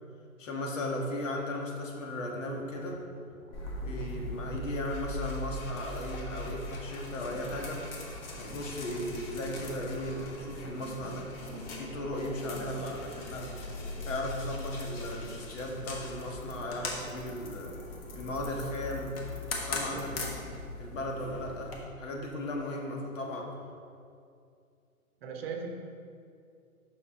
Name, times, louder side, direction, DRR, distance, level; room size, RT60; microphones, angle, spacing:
voice 1, 0.4-3.0 3.7-7.9 8.4-11.3 11.8-13.5 14.0-17.8 18.1-20.5 20.8-23.5, left 1 dB, 60° left, 0 dB, 1.5 m, -36 dB
sound 1, 2.5-6.9 10.3-17.1 17.4-17.6 17.9-18.0 18.5-18.6, left 1 dB, 15° right, 1.4 m, -51 dB
sound 2, 3.5-21.8, left 2 dB, 40° left, 1.4 m, -40 dB
voice 2, 19.9-20.4 25.2-25.7, right 6 dB, 45° right, 3 dB, 0.9 m, -39 dB
6.2 x 5.7 x 4.5 m, 2.4 s
figure-of-eight pair, 125°, 43 cm